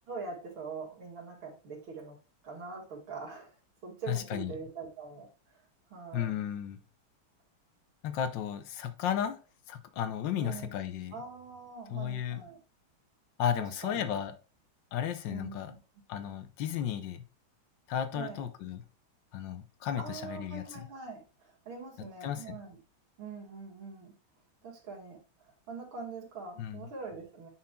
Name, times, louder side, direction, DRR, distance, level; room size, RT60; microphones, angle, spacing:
voice 1, 0.1-2.2 2.4-3.5 3.8-5.6 5.9-6.4 10.4-10.7 11.1-12.6 13.6-14.1 15.3-15.8 18.1-18.5 20.0-22.8 23.2-24.1 24.6-25.2 25.7-27.5, right 4 dB, 75° right, 2.7 m, -43 dB
voice 2, 4.1-4.5 6.1-6.8 8.0-9.4 9.7-11.2 11.9-12.4 13.4-14.3 14.9-15.7 16.1-17.2 17.9-18.8 19.3-20.6 22.2-22.6 26.6-26.9, left 9 dB, 70° left, 1.3 m, -34 dB
9.6 x 4.5 x 2.3 m
omnidirectional pair, 2.2 m